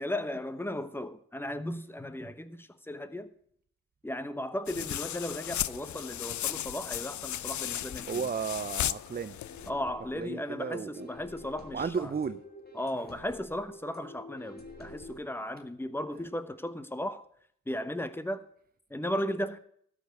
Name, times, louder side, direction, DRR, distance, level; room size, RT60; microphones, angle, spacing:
voice 1, 0.0-3.3 4.0-8.2 9.7-12.1 12.7-17.2 17.7-18.4 18.9-19.6, left 1 dB, 5° left, 1.0 m, -36 dB
sound 1, 4.7-9.7, left 11 dB, 60° left, 0.5 m, -35 dB
voice 2, 8.1-9.4 10.2-11.1 11.7-12.4, right 6 dB, 25° right, 0.5 m, -34 dB
sound 2, 9.4-15.2, left 1 dB, 30° left, 2.3 m, -48 dB
13.0 x 5.3 x 7.9 m
cardioid pair, 60°, 34 cm